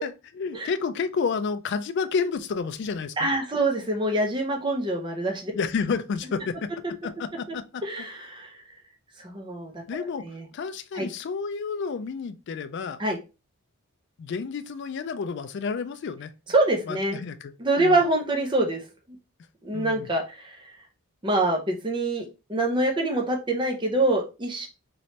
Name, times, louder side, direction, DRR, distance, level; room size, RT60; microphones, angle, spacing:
voice 1, 0.0-3.3 5.5-6.7 7.0-7.8 9.9-13.0 14.2-16.3 16.9-18.0 19.7-20.1, left 5 dB, 50° left, 0.3 m, -30 dB
voice 2, 3.2-5.5 7.5-7.6 7.8-8.5 9.2-9.7 10.0-10.4 10.9-11.1 13.0-13.2 16.5-17.2 17.6-18.8 19.6-20.7 21.2-24.7, right 2 dB, 20° right, 0.5 m, -25 dB
3.1 x 3.1 x 2.7 m
head